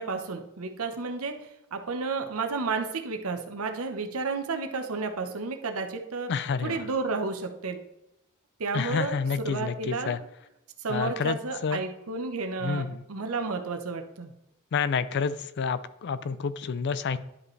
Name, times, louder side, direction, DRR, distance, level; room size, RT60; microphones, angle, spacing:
voice 1, 0.0-1.3 1.7-6.3 6.6-7.8 8.6-10.1 10.8-14.3, right 4 dB, 90° right, 5 dB, 0.9 m, -32 dB
voice 2, 6.3-6.8 8.7-10.2 10.9-11.8 12.6-13.0 14.7-17.2, left 5 dB, 55° left, 15 dB, 0.4 m, -29 dB
11.0 x 5.1 x 3.2 m, 0.88 s
head